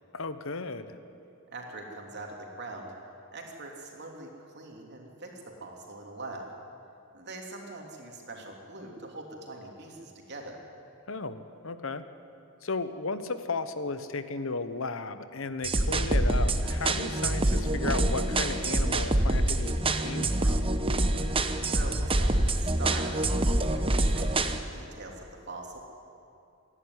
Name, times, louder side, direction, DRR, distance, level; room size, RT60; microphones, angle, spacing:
voice 1, 0.1-0.9 11.1-12.0 12.6-20.7, left 3 dB, 65° left, 11 dB, 1.1 m, -35 dB
voice 2, 1.5-2.9 3.3-6.5 7.1-10.6 21.7-25.8, right 2 dB, 50° right, 1 dB, 3.3 m, -42 dB
sound 1, 15.6-24.6, right 1 dB, 25° right, 0.9 m, -26 dB
27.0 x 11.0 x 9.8 m, 2.6 s
head